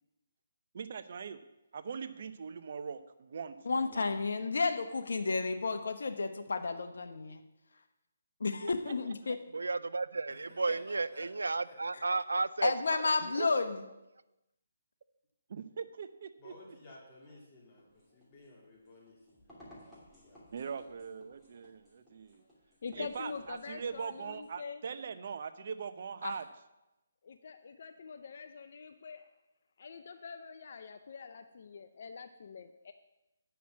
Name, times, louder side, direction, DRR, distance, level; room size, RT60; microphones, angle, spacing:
voice 1, 0.7-1.4 1.7-4.1 13.4-13.5 15.5-16.5 20.5-22.4 23.0-26.5, right 6 dB, 55° right, 11 dB, 0.7 m, -41 dB
voice 2, 3.7-7.4 8.4-9.4 12.6-13.8 26.2-26.3, left 4 dB, 70° left, 6 dB, 1.1 m, -32 dB
voice 3, 9.5-12.7, right 3 dB, 90° right, 17 dB, 0.3 m, -33 dB
voice 4, 10.3-11.8 16.4-19.4 20.1-20.4, left 1 dB, 20° left, -5 dB, 2.3 m, -54 dB
sound 1, 17.8-24.5, equal, 5° left, 2.8 m, -59 dB
voice 5, 22.8-24.8 27.2-29.3 29.8-32.9, left 5 dB, 55° left, 9 dB, 0.6 m, -45 dB
9.3 x 5.9 x 7.3 m, 0.96 s
hypercardioid pair, 155°, 0 cm